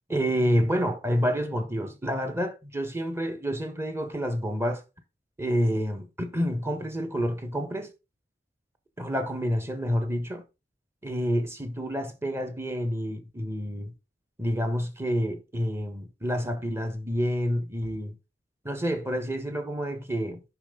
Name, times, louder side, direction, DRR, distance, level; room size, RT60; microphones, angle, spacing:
voice 1, 0.1-4.8 5.4-7.9 9.0-10.4 11.0-13.9 14.4-18.2 18.6-20.4, equal, 15° right, 1.4 m, -28 dB
10.0 x 5.9 x 3.9 m
head